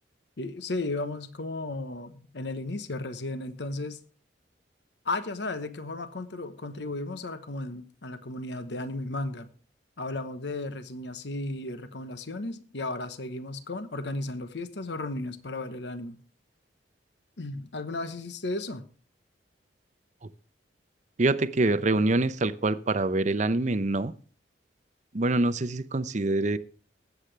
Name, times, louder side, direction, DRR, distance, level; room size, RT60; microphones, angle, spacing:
voice 1, 0.4-4.0 5.0-9.5 10.0-16.2 17.4-18.9, left 2 dB, 65° left, 1.0 m, -34 dB
voice 2, 21.2-24.1 25.1-26.6, right 2 dB, 40° right, 0.7 m, -25 dB
20.5 x 8.1 x 3.3 m
head